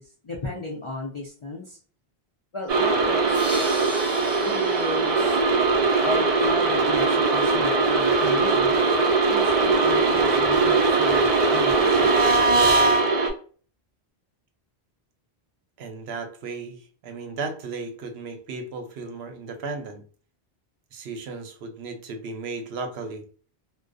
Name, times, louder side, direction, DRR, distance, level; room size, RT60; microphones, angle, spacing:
voice 1, 0.0-1.8 2.5-3.5 4.4-5.4 6.0-8.8 9.3-12.2, left 1 dB, 50° left, -2 dB, 0.3 m, -35 dB
sound 1, 2.7-13.3, right 3 dB, 50° right, 0.5 m, -20 dB
sound 2, 3.3-6.4, equal, 5° right, 0.7 m, -38 dB
voice 2, 15.8-20.0 20.9-23.2, right 4 dB, 80° right, 6 dB, 0.8 m, -35 dB
2.4 x 2.2 x 2.4 m, 0.42 s
omnidirectional pair, 1.1 m